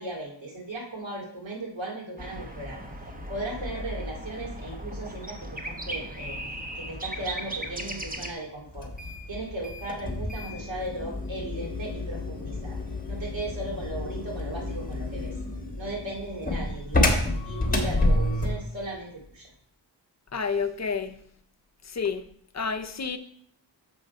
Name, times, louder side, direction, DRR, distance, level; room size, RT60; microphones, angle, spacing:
voice 1, 0.0-2.8 3.3-6.4 6.7-8.9 9.3-12.8 13.1-15.3 15.7-17.2 17.4-19.5, right 1 dB, 80° right, -2 dB, 2.4 m, -37 dB
sound 1, 2.2-8.3, right 1 dB, 20° right, 0.8 m, -37 dB
sound 2, 8.7-18.7, left 1 dB, 20° left, 1.2 m, -29 dB
voice 2, 20.3-21.2 21.8-22.3 22.5-23.2, left 5 dB, 40° left, 8 dB, 0.6 m, -29 dB
6.9 x 5.2 x 5.4 m, 0.63 s
wide cardioid pair, 135°, 45 cm